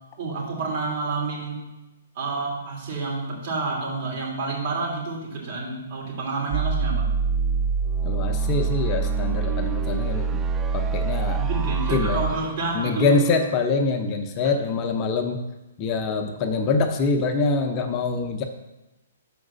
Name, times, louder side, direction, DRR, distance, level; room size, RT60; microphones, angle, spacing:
voice 1, 0.2-1.6 2.1-7.1 11.4-13.2, right 3 dB, 50° right, -2 dB, 3.0 m, -29 dB
sound 1, 6.5-13.5, right 5 dB, 15° right, 0.3 m, -25 dB
voice 2, 8.0-10.5 10.7-11.4 11.9-12.3 12.7-15.4 15.8-18.4, left 3 dB, 30° left, 5 dB, 0.7 m, -24 dB
5.9 x 4.9 x 6.7 m, 1.0 s
hypercardioid pair, 140°, 0 cm